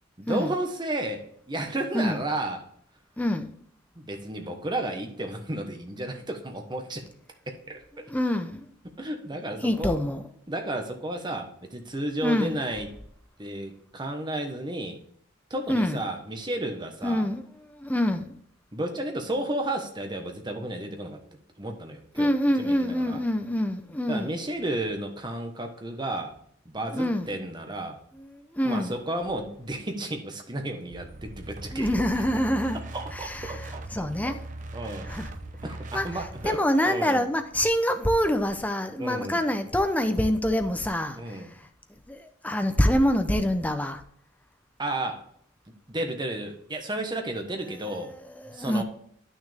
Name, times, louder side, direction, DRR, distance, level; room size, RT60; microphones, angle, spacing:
voice 1, 0.2-2.7 3.9-7.0 7.5-7.8 8.9-10.0 10.5-12.9 13.4-15.0 15.5-17.3 18.7-21.2 21.6-22.3 22.6-23.2 24.1-26.4 26.6-28.0 28.6-31.9 32.9-34.3 34.7-35.1 35.6-36.6 36.8-37.3 39.0-39.4 41.1-41.5 44.8-45.3 45.9-48.1 48.5-48.8, right 1 dB, 25° right, 1.1 m, -32 dB
voice 2, 3.2-3.5 8.1-8.7 9.6-10.2 12.2-12.6 15.7-16.0 17.0-18.3 22.2-24.3 26.9-27.3 28.1-28.9 31.7-32.8 33.1-34.4 35.1-35.3 35.9-41.6 42.1-44.0 47.8-48.8, left 1 dB, 10° left, 0.7 m, -26 dB
sound 1, 30.9-36.5, right 2 dB, 40° right, 0.8 m, -40 dB
9.6 x 6.3 x 3.4 m
head